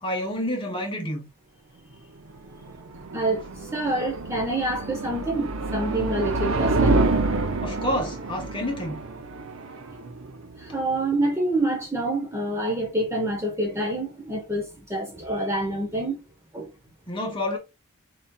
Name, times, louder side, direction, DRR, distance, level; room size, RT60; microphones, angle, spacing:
voice 1, 0.0-1.3 7.6-9.0 17.1-17.6, left 1 dB, 25° left, 1.2 m, -29 dB
sound 1, 2.3-11.3, right 2 dB, 70° right, 0.7 m, -28 dB
voice 2, 3.1-7.1 10.6-16.2 16.5-16.7, right 1 dB, 15° right, 0.9 m, -27 dB
4.2 x 4.1 x 2.3 m
head